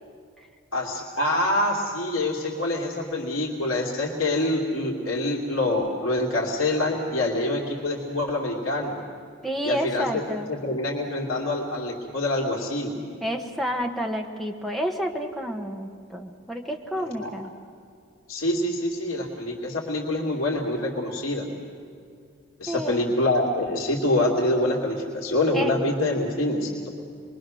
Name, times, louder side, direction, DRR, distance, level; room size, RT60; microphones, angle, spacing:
voice 1, 0.7-9.0 9.6-10.2 10.5-13.0 16.9-17.3 18.3-21.4 22.6-26.9, left 1 dB, 80° left, -2 dB, 2.8 m, -26 dB
voice 2, 9.4-10.5 13.2-17.5 22.7-23.0 25.5-25.7, equal, ahead, 2 dB, 1.3 m, -29 dB
27.5 x 22.0 x 6.4 m, 2.4 s
head